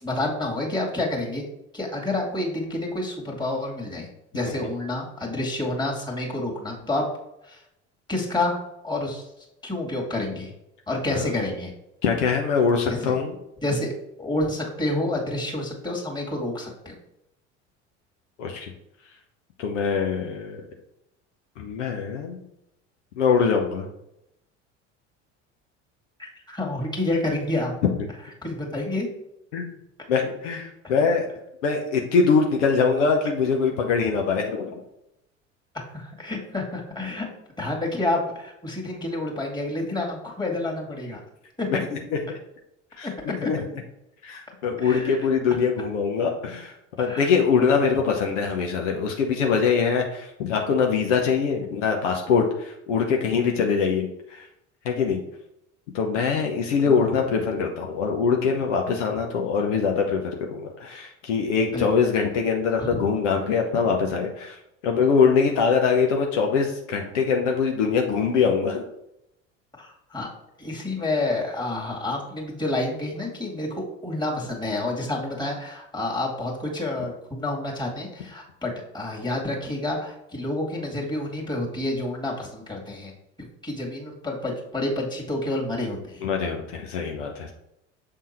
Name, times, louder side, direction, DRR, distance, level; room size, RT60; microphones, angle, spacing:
voice 1, 0.0-1.4 1.7-4.1 4.3-7.0 7.4-7.6 8.1-8.6 8.8-9.3 9.6-10.5 10.9-11.7 12.9-13.1 13.6-13.9 14.2-17.0 26.2-27.7 28.4-29.1 35.9-37.3 37.6-41.2 41.6-41.8 43.0-43.1 43.4-43.5 44.8-45.2 47.0-47.3 47.9-48.0 56.8-57.1 61.7-61.9 62.7-63.0 69.8-70.3 70.6-83.1 83.4-86.2, left 2 dB, 10° left, -2 dB, 2.1 m, -29 dB
voice 2, 12.0-13.3 18.4-18.7 19.6-20.6 21.6-22.4 23.2-23.9 29.5-29.7 30.1-31.3 31.6-34.8 41.7-42.2 43.0-43.7 44.2-54.4 54.8-55.2 55.9-64.6 64.8-68.8 86.2-87.5, left 5 dB, 75° left, 2 dB, 0.9 m, -23 dB
6.8 x 3.7 x 4.2 m, 0.82 s
hypercardioid pair, 65°, 37 cm